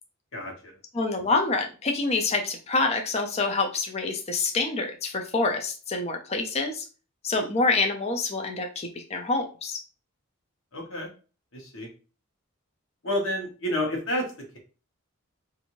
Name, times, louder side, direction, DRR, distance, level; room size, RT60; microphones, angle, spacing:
voice 1, 0.3-0.7 10.7-11.1 11.5-11.9 13.0-14.6, left 1 dB, 65° left, -1 dB, 1.1 m, -30 dB
voice 2, 0.9-6.8 7.2-9.8, left 3 dB, 30° left, 4 dB, 0.4 m, -26 dB
2.6 x 2.6 x 2.9 m, 0.35 s
head